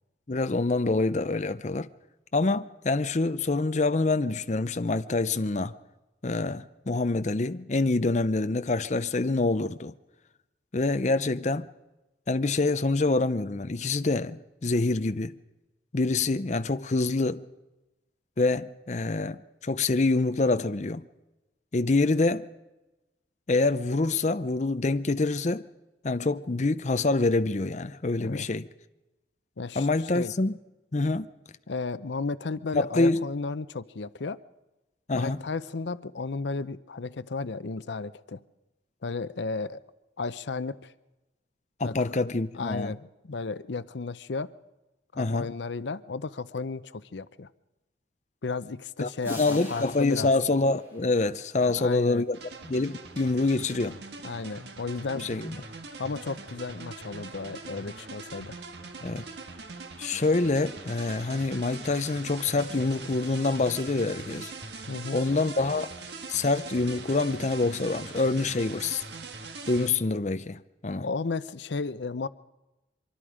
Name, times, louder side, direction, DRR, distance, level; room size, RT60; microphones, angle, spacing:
voice 1, 0.3-1.9 2.3-5.7 6.2-9.9 10.7-11.7 12.3-15.4 15.9-17.5 18.4-21.0 21.7-22.5 23.5-25.7 26.0-28.7 29.8-30.6 30.9-31.3 32.7-33.2 35.1-35.4 41.8-42.9 45.2-45.5 49.0-49.1 49.4-52.4 52.6-54.0 55.2-55.5 59.0-59.2 60.0-64.5 65.1-65.9 66.3-69.0 69.7-71.1, left 3 dB, 40° left, 0.6 m, -26 dB
voice 2, 29.6-29.9 30.1-30.3 31.7-34.4 35.1-38.4 39.0-39.8 40.2-40.9 41.8-42.0 42.5-44.5 45.1-47.5 48.4-50.3 51.6-52.2 54.2-55.3 56.0-58.6 64.9-65.2 71.0-72.3, left 4 dB, 75° left, 0.7 m, -33 dB
sound 1, 49.2-51.7, left 1 dB, 15° right, 7.5 m, -45 dB
sound 2, 52.3-69.9, right 4 dB, 70° right, 1.8 m, -42 dB
24.5 x 23.5 x 5.0 m
head